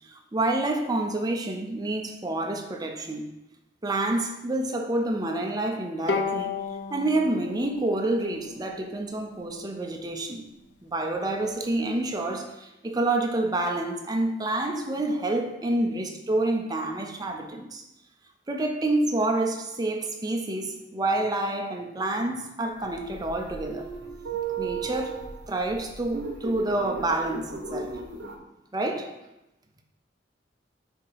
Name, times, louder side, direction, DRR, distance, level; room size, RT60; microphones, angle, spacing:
voice 1, 0.0-3.3 3.8-6.5 6.9-10.5 10.8-17.8 18.5-23.9 24.6-25.2 25.5-28.0 28.7-29.1, right 2 dB, 20° right, 0.6 m, -28 dB
Bowed string instrument, 6.1-9.4, left 4 dB, 65° left, 0.6 m, -33 dB
sound 1, 22.8-28.4, right 5 dB, 75° right, 0.9 m, -36 dB
7.8 x 2.9 x 4.7 m
head